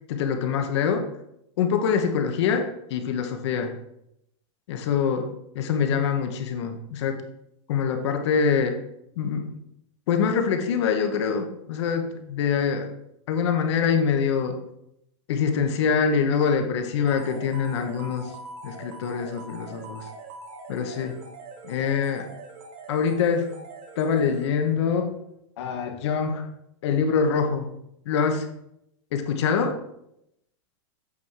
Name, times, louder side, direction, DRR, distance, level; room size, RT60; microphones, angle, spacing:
voice 1, 0.1-1.0 1.6-3.7 4.7-5.3 5.5-7.2 7.7-8.8 9.2-9.5 10.1-12.9 13.3-14.6 15.3-18.3 18.6-20.0 20.7-21.1 21.6-22.3 22.9-23.5 24.0-25.1 25.6-26.5 26.8-27.7 28.1-28.4 29.1-29.8, left 6 dB, 60° left, 5 dB, 1.0 m, -24 dB
sound 1, 17.1-24.8, right 3 dB, 45° right, 1.7 m, -43 dB
8.2 x 3.6 x 4.7 m, 0.79 s
supercardioid pair, 165°, 16 cm